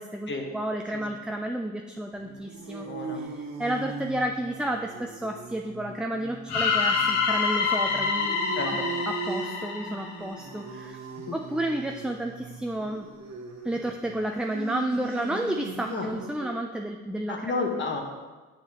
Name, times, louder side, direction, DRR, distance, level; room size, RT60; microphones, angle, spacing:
voice 1, 0.0-2.9 3.1-8.4 8.6-8.8 9.1-11.0 11.3-13.1 13.6-17.5, right 1 dB, 5° right, 2 dB, 0.3 m, -31 dB
sound 1, 2.2-16.6, right 4 dB, 60° right, 0.9 m, -39 dB
voice 2, 2.8-3.2 8.6-8.9 11.3-11.4 15.9-16.1 17.3-18.0, left 3 dB, 40° left, 2 dB, 1.2 m, -31 dB
sound 2, 6.5-10.6, left 5 dB, 85° left, 1.0 m, -26 dB
7.4 x 5.6 x 2.9 m, 1.3 s
cardioid pair, 90°, 30 cm